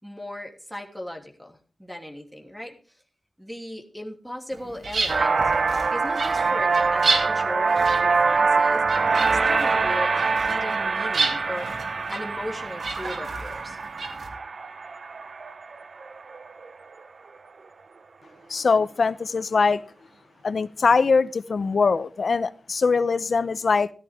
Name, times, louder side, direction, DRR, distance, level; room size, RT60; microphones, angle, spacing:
voice 1, 0.0-3.0 3.4-5.5 5.9-8.8 9.2-11.8 12.1-13.8, left 1 dB, 5° right, 2.9 m, -37 dB
sound 1, 4.5-14.3, right 3 dB, 90° right, 2.6 m, -32 dB
sound 2, 5.1-16.7, right 4 dB, 70° right, 1.0 m, -24 dB
voice 2, 18.5-19.8 20.4-23.9, left 4 dB, 65° left, 0.7 m, -22 dB
14.5 x 13.5 x 3.5 m
wide cardioid pair, 110°, 0 cm